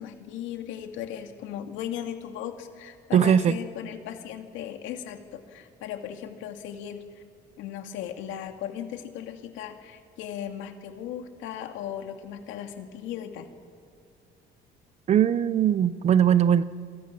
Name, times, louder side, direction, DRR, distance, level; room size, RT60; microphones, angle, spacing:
voice 1, 0.0-7.2 7.6-13.5, left 10 dB, 85° left, 5 dB, 2.4 m, -37 dB
voice 2, 3.1-3.6 15.1-16.6, right 9 dB, 35° right, 16 dB, 0.6 m, -20 dB
28.5 x 23.5 x 6.2 m, 2.3 s
cardioid pair, 165°, 19 cm